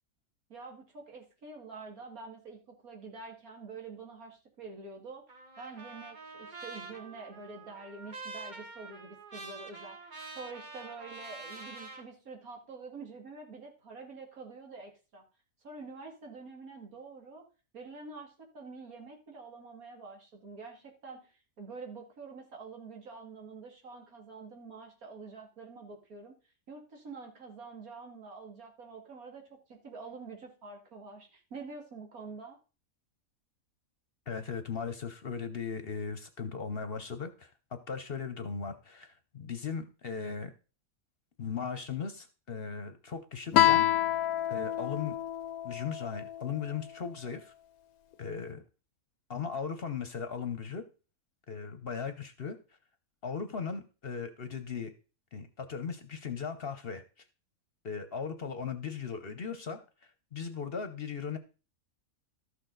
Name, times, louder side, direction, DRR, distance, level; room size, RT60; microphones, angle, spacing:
voice 1, 0.5-5.2 5.6-15.2 15.6-17.4 17.7-26.3 26.7-32.6, right 4 dB, 80° right, 2 dB, 2.6 m, -47 dB
Trumpet, 5.3-12.0, right 3 dB, 35° right, 1.5 m, -46 dB
voice 2, 34.3-40.5 41.4-43.9 44.5-45.2 45.6-47.5 48.2-48.6 49.3-50.8 51.5-52.6 53.2-54.9 55.3-57.0 57.8-59.8 60.3-61.4, left 6 dB, 45° left, 9 dB, 1.0 m, -37 dB
Guitar, 43.5-46.8, left 12 dB, 85° left, 1.2 m, -28 dB
13.0 x 6.6 x 3.9 m, 0.34 s
omnidirectional pair, 1.5 m